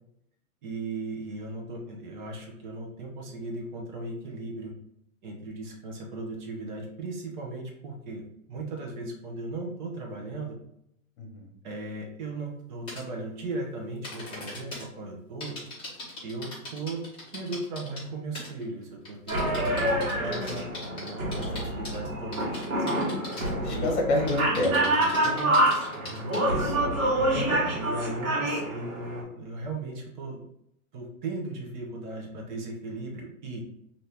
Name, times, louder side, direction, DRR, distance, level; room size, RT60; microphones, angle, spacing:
voice 1, 0.6-4.7 5.2-10.6 11.6-15.6 16.2-17.0 17.3-22.9 23.7-23.9 25.2-26.9 27.7-30.4 30.9-33.6, right 2 dB, 35° right, 0 dB, 0.7 m, -37 dB
voice 2, 11.2-11.5 23.6-25.0 27.3-27.6, left 1 dB, 50° left, 1 dB, 1.1 m, -28 dB
sound 1, 12.9-13.0 14.0-14.8 15.4-18.1 18.3-18.6 19.0-22.0 22.3-23.5 23.8-26.4, left 2 dB, 10° left, 1.0 m, -40 dB
sound 2, 19.3-29.2, right 1 dB, 75° right, 1.5 m, -27 dB
2.8 x 2.6 x 3.4 m, 0.76 s
hypercardioid pair, 150°, 42 cm